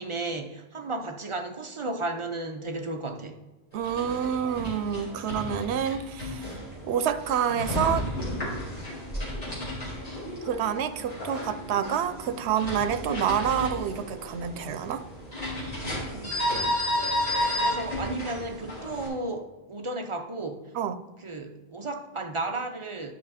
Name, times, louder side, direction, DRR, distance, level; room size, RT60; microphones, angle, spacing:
voice 1, 0.0-3.4 16.1-16.5 17.5-20.7 21.2-23.1, right 2 dB, 35° right, 5 dB, 0.6 m, -34 dB
sound 1, 3.7-19.1, left 1 dB, 35° left, 3.4 m, -33 dB
voice 2, 3.7-6.5 6.8-8.1 10.4-15.0 20.7-21.0, right 8 dB, 85° right, 12 dB, 0.9 m, -28 dB
10.0 x 5.5 x 4.2 m, 1.1 s
omnidirectional pair, 1.1 m